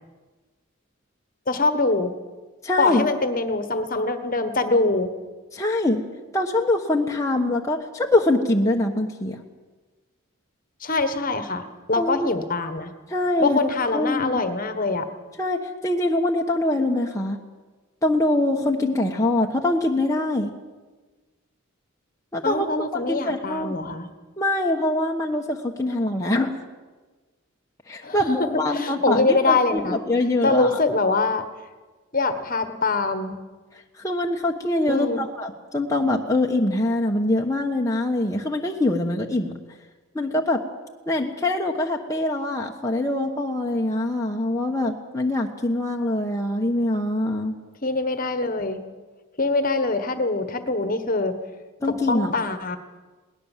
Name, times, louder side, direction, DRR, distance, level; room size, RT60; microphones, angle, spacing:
voice 1, 1.5-2.1 2.8-5.1 10.8-12.9 13.4-15.1 22.4-24.1 28.0-28.5 28.7-30.0 30.4-31.4 32.1-33.4 34.9-35.2 47.8-48.8 49.4-51.4 51.9-52.8, left 3 dB, 40° left, 9 dB, 1.4 m, -24 dB
voice 2, 2.6-3.1 5.5-6.0 6.3-9.4 11.9-12.3 13.1-13.6 13.9-14.4 15.4-17.4 18.0-20.5 22.3-22.7 22.9-23.7 24.4-26.6 27.9-30.8 34.0-39.5 40.1-40.6 41.1-47.5 51.8-52.3, left 1 dB, 15° left, 0 dB, 1.2 m, -23 dB
21.5 x 18.5 x 7.4 m, 1.3 s
head